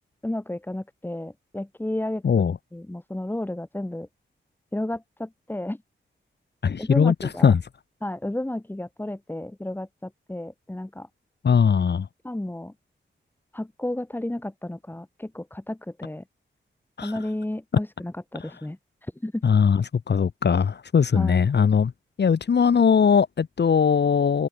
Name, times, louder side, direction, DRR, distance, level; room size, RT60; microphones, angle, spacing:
voice 1, 0.2-2.2 2.7-4.1 4.7-5.8 6.8-7.5 8.0-11.1 12.2-12.7 13.5-16.2 17.0-18.8 19.2-19.4 21.1-21.4, left 1 dB, 10° left, 7.9 m, -32 dB
voice 2, 2.2-2.6 6.6-7.6 11.4-12.1 17.0-17.1 18.4-18.5 19.4-21.9 22.2-24.5, left 6 dB, 60° left, 2.7 m, -20 dB
wide cardioid pair, 150°, 20 cm